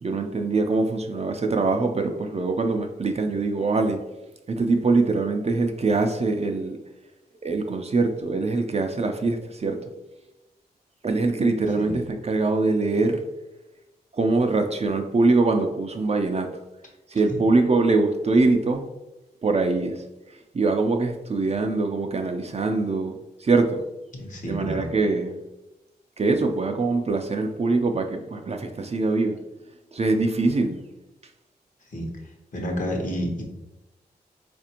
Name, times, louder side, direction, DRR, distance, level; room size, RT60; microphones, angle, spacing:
voice 1, 0.0-4.0 4.5-6.8 7.4-9.8 11.0-13.2 14.1-16.5 17.1-18.9 19.4-20.0 20.5-23.1 23.4-23.8 24.4-25.4 26.2-29.4 29.9-30.8, right 3 dB, 35° right, 5 dB, 0.4 m, -23 dB
voice 2, 24.1-24.8 31.9-32.1 32.5-33.4, equal, 50° left, 1 dB, 1.0 m, -30 dB
4.1 x 2.5 x 2.8 m, 0.99 s
cardioid pair, 45°, 18 cm